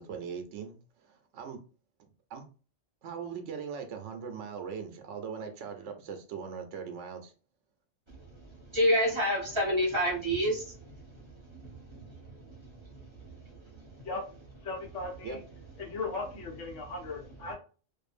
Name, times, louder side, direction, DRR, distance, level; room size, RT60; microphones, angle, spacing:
voice 1, 0.0-1.6 2.3-2.4 3.0-7.3 15.2-15.4, right 6 dB, 75° right, 0.9 m, -40 dB
voice 2, 8.4-11.2 11.5-12.6 12.9-13.4 13.7-14.0, equal, 30° right, 0.7 m, -30 dB
voice 3, 14.6-15.4 15.8-17.5, left 3 dB, 75° left, 1.2 m, -37 dB
2.6 x 2.4 x 2.4 m
omnidirectional pair, 1.3 m